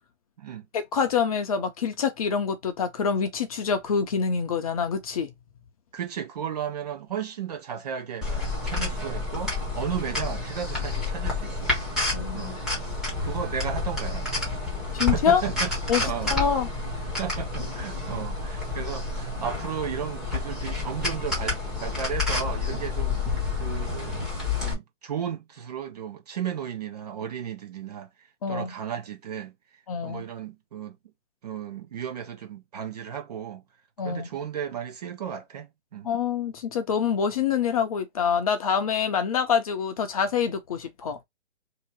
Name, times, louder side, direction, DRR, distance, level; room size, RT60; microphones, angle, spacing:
voice 1, 0.7-5.3 8.8-8.9 12.1-12.5 14.9-15.4 15.9-16.7 28.4-28.7 29.9-30.2 34.0-34.3 36.0-41.2, left 6 dB, 30° left, 0.5 m, -26 dB
voice 2, 5.9-8.3 8.6-11.7 12.3-12.6 13.2-14.6 15.1-15.7 16.0-16.4 17.2-23.2 23.6-24.3 24.6-28.1 28.5-29.5 30.0-31.0 31.4-33.6 34.0-36.1, right 8 dB, 35° right, 0.5 m, -34 dB
sound 1, 8.2-24.7, left 3 dB, ahead, 0.7 m, -29 dB
2.8 x 2.7 x 4.3 m
hypercardioid pair, 150°, 36 cm